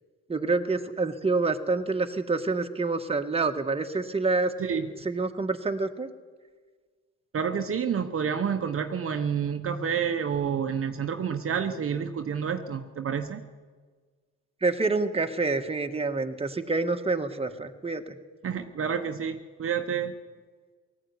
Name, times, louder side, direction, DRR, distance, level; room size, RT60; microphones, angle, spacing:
voice 1, 0.3-4.5 5.0-6.1 14.6-18.2, right 3 dB, 20° right, 6 dB, 1.7 m, -27 dB
voice 2, 7.3-13.4 18.4-20.1, right 7 dB, 45° right, 6 dB, 1.2 m, -29 dB
18.5 x 15.0 x 9.7 m, 1.5 s
cardioid pair, 90°, 30 cm